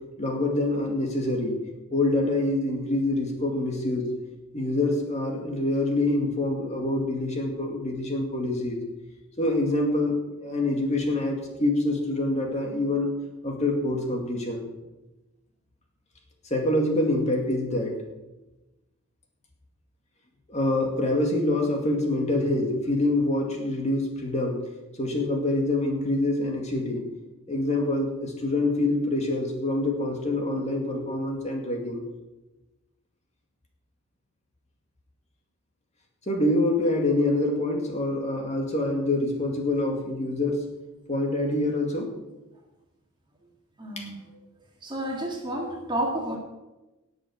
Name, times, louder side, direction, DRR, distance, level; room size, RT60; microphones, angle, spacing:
voice 1, 0.2-1.6 1.9-4.1 4.5-8.8 9.4-13.1 13.4-14.7 16.5-17.9 20.5-24.6 25.0-27.1 27.5-32.0 36.3-40.6 41.1-42.1 44.0-44.1, left 2 dB, 30° left, 1 dB, 2.2 m, -26 dB
voice 2, 43.8-44.2 44.8-46.4, right 1 dB, 20° right, 0 dB, 2.2 m, -30 dB
19.0 x 6.4 x 6.4 m, 1.0 s
head